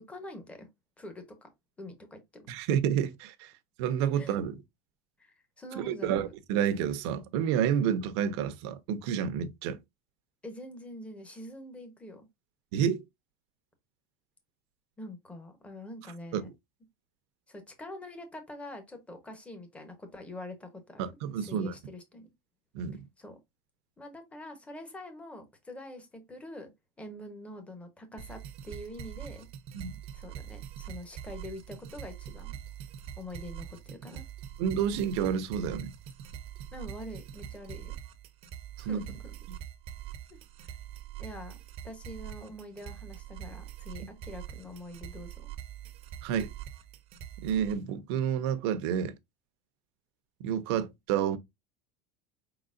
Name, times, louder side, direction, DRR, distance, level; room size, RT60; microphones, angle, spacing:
voice 1, 0.1-0.7 1.0-1.5 1.8-2.4 4.1-4.4 5.2-6.3 10.4-12.3 15.0-16.5 17.5-21.0 21.4-22.3 23.2-23.4 24.0-26.7 27.0-29.5 30.1-32.6 33.2-34.3 36.7-38.0 38.8-39.3 40.6-40.8 41.2-45.5, left 1 dB, 10° left, 1.0 m, -45 dB
voice 2, 2.5-3.5 3.8-4.6 5.7-9.8 12.7-13.0 16.3-16.4 21.0-21.7 22.7-23.0 29.7-30.0 34.6-35.9 38.8-39.0 46.2-46.5 47.4-49.1 50.4-51.4, right 8 dB, 75° right, 0.8 m, -29 dB
sound 1, 28.2-47.7, right 10 dB, 40° right, 0.7 m, -44 dB
4.8 x 3.9 x 2.5 m
cardioid pair, 160°, 14 cm